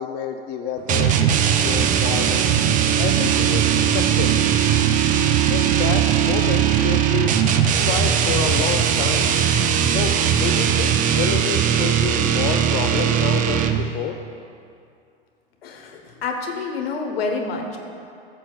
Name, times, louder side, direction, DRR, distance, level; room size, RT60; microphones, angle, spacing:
voice 1, 0.0-1.4 1.6-2.5 3.0-4.4 5.5-7.3 7.8-9.3 9.9-14.2, left 8 dB, 35° left, 6 dB, 0.4 m, -29 dB
sound 1, 0.9-14.0, right 9 dB, 25° right, 0.5 m, -19 dB
voice 2, 15.6-17.8, left 4 dB, 75° left, 2 dB, 1.3 m, -28 dB
13.0 x 7.1 x 2.5 m, 2.5 s
hypercardioid pair, 95°, 30 cm